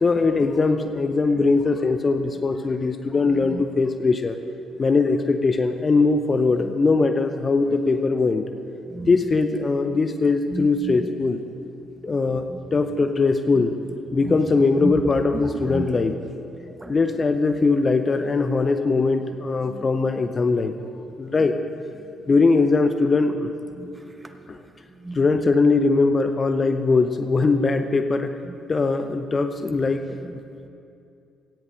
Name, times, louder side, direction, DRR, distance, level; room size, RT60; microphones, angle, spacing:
voice 1, 0.0-4.4 4.8-8.5 9.1-11.4 12.0-12.5 12.7-13.7 14.1-16.2 16.9-20.7 21.2-21.5 22.3-23.5 24.5-24.6 25.1-28.3 28.7-30.2, left 3 dB, 35° left, 8 dB, 0.8 m, -21 dB
voice 2, 8.9-9.2 9.9-10.0 10.5-11.1 11.8-12.2 12.5-12.6 13.5-13.6 14.2-14.4 14.8-15.0 15.4-15.9 16.7-17.0 19.7-19.9 23.8-24.7 25.0-25.2 28.5-28.6 29.7-29.8 30.2-30.7, right 2 dB, 15° right, 7 dB, 1.2 m, -34 dB
17.0 x 16.0 x 3.3 m, 2.5 s
figure-of-eight pair, 45°, 0 cm